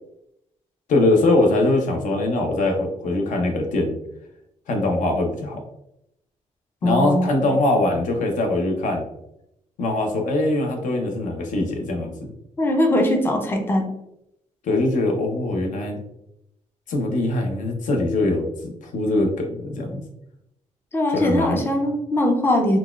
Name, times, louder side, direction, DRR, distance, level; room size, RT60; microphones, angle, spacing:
voice 1, 0.9-4.0 4.7-5.6 6.8-9.0 9.8-12.3 14.6-16.0 16.9-20.0 21.1-21.6, left 2 dB, 75° left, 3 dB, 0.7 m, -22 dB
voice 2, 6.8-7.3 12.6-13.9 20.9-22.8, left 1 dB, 15° left, 3 dB, 0.5 m, -21 dB
4.0 x 2.3 x 2.3 m, 0.81 s
cardioid pair, 150°, 13 cm